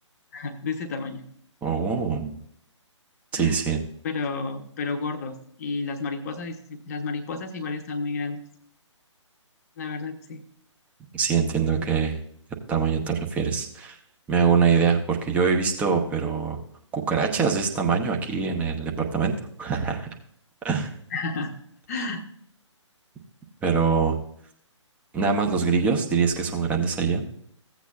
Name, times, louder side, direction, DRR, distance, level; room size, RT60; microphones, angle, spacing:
voice 1, 0.3-1.2 3.3-3.6 4.0-8.4 9.8-10.4 21.1-21.5 21.9-22.2, left 4 dB, 30° left, 5 dB, 0.9 m, -31 dB
voice 2, 1.6-2.4 3.3-3.8 11.1-12.2 12.7-14.0 14.3-16.6 16.9-19.3 19.6-20.1 20.6-20.9 23.6-24.2 25.1-27.2, right 6 dB, 10° right, 2 dB, 0.9 m, -23 dB
15.5 x 8.2 x 2.4 m, 0.66 s
figure-of-eight pair, 140°, 16 cm